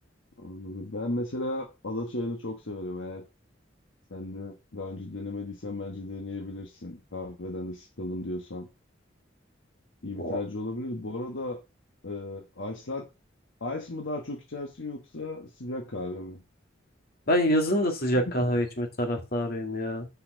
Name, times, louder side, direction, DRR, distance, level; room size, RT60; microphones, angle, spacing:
voice 1, 0.4-3.2 4.1-8.7 10.0-11.6 12.0-13.0 13.6-16.4 18.1-18.4, left 2 dB, 80° left, 2 dB, 1.3 m, -35 dB
voice 2, 17.3-20.1, equal, 55° left, 4 dB, 2.1 m, -26 dB
6.5 x 5.6 x 6.3 m, 0.28 s
head